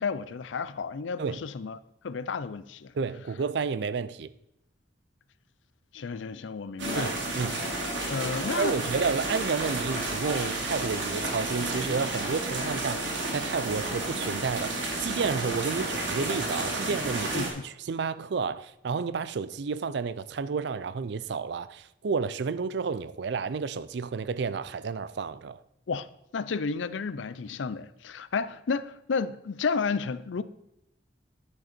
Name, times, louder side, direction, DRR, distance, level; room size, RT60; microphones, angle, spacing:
voice 1, 0.0-1.8 2.0-2.9 5.9-7.2 8.1-8.9 17.3-17.6 25.9-26.1 26.3-30.4, left 5 dB, 85° left, 0.5 m, -32 dB
voice 2, 2.9-4.3 6.9-7.6 8.5-25.6, right 5 dB, 65° right, 0.4 m, -31 dB
sound 1, 6.8-17.5, right 2 dB, 85° right, 2.5 m, -31 dB
10.0 x 6.5 x 4.4 m
head